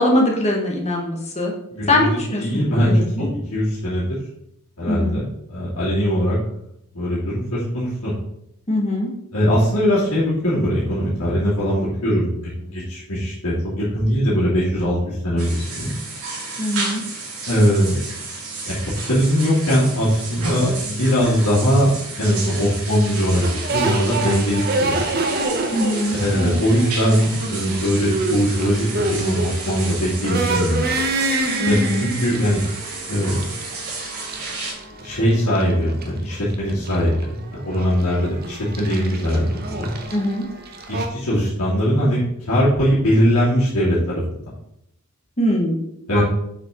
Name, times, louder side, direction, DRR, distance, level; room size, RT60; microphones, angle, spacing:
voice 1, 0.0-1.5 1.9-3.3 4.9-5.2 8.7-9.1 16.6-17.0 25.7-26.2 31.6-32.1 40.1-40.4 45.4-45.8 46.1-46.2, left 1 dB, 30° left, -1 dB, 1.7 m, -21 dB
voice 2, 1.7-2.1 2.4-4.1 4.8-6.4 6.9-8.1 9.3-12.3 12.6-15.9 17.5-18.0 18.7-18.8 19.1-25.0 26.2-30.8 31.7-32.6 33.0-33.5 35.0-39.9 40.9-44.2 46.1-46.2, equal, 80° left, -10 dB, 2.9 m, -20 dB
sound 1, 15.4-34.7, right 3 dB, 80° right, 3.5 m, -32 dB
sound 2, 23.4-41.1, right 2 dB, 45° right, 1.1 m, -27 dB
7.9 x 6.3 x 3.9 m, 0.79 s
head